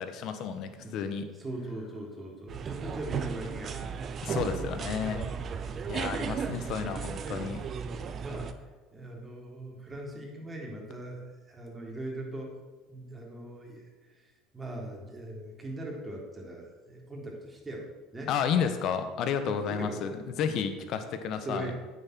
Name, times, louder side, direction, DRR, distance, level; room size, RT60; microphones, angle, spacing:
voice 1, 0.0-1.3 4.2-5.3 5.9-7.6 18.3-20.1 20.4-21.7, left 7 dB, 55° left, 9 dB, 1.2 m, -31 dB
voice 2, 0.8-3.9 8.2-12.6 12.9-18.3 19.7-20.1 20.5-20.8 21.4-21.8, right 1 dB, 20° right, -1 dB, 3.5 m, -40 dB
sound 1, 2.5-8.5, right 6 dB, 40° right, 0.8 m, -35 dB
9.2 x 7.4 x 6.3 m, 1.3 s
hypercardioid pair, 70°, 0 cm